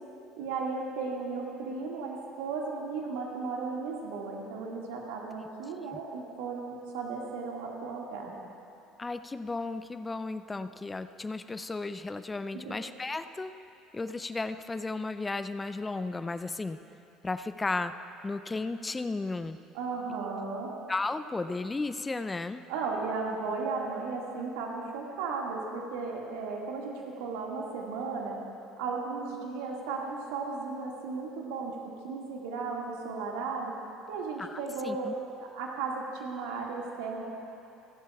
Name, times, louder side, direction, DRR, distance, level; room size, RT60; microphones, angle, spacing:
voice 1, 0.4-8.4 12.5-12.8 19.7-20.7 22.7-28.4 28.8-31.8 32.0-33.7 34.1-35.1 35.4-37.2, right 4 dB, 70° right, -1 dB, 1.9 m, -35 dB
voice 2, 9.0-13.5 13.9-16.8 17.2-17.9 18.2-19.6 20.9-22.6 34.4-35.1, left 3 dB, 20° left, 11 dB, 0.5 m, -34 dB
29.0 x 11.5 x 2.3 m, 2.8 s
hypercardioid pair, 65°, 0 cm